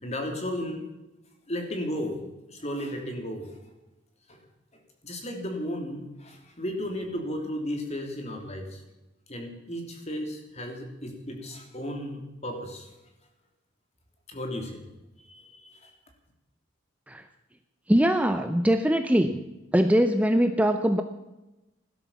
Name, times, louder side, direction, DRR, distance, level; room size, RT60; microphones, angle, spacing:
voice 1, 0.0-0.8 1.5-2.2 2.5-3.5 4.3-4.4 4.7-8.8 9.3-12.9 14.3-14.9 15.2-15.9, equal, 35° left, 4 dB, 3.1 m, -34 dB
voice 2, 17.9-19.4 19.7-21.0, equal, 5° right, 8 dB, 0.7 m, -22 dB
16.5 x 12.0 x 7.3 m, 0.99 s
head